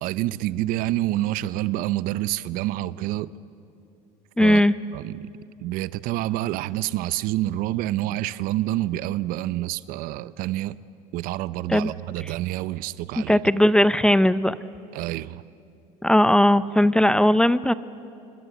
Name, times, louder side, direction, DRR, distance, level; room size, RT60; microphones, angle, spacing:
voice 1, 0.0-3.3 4.4-4.6 4.9-5.3 5.6-10.8 11.1-13.4 14.9-15.4, right 15 dB, 65° right, 0.7 m, -27 dB
voice 2, 4.4-4.7 11.7-11.9 13.3-14.5 16.0-17.7, left 1 dB, 5° left, 0.5 m, -18 dB
26.5 x 24.5 x 8.1 m
supercardioid pair, 110°, 16 cm